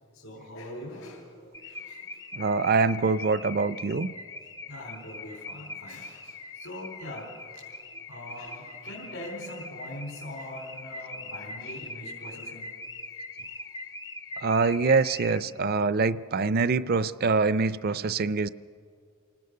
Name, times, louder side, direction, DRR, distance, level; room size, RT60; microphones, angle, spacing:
voice 1, 0.1-2.2 4.7-12.7 13.0-13.7, left 1 dB, 80° left, -4 dB, 4.2 m, -42 dB
Car / Alarm, 1.5-15.7, left 2 dB, 15° left, 0.5 m, -42 dB
voice 2, 2.3-4.1 14.4-18.5, right 4 dB, 45° right, 16 dB, 0.5 m, -24 dB
28.5 x 19.5 x 6.7 m, 2.3 s
head